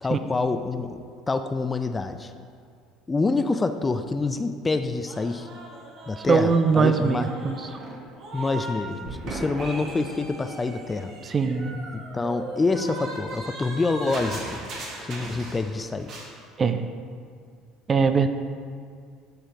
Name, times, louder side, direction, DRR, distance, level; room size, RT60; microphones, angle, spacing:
voice 1, 0.0-2.3 3.1-5.5 6.1-7.3 8.3-11.1 11.9-14.6 15.0-16.1, left 3 dB, 20° left, 9 dB, 0.4 m, -27 dB
sound 1, 5.1-8.8 9.0-15.7 16.0-16.3, right 2 dB, 50° right, 1.8 m, -38 dB
voice 2, 6.2-7.8 11.3-11.8 16.6-16.8 17.9-18.3, right 5 dB, 30° right, 9 dB, 0.5 m, -22 dB
11.0 x 6.5 x 3.0 m, 2.2 s
figure-of-eight pair, 60°, 0 cm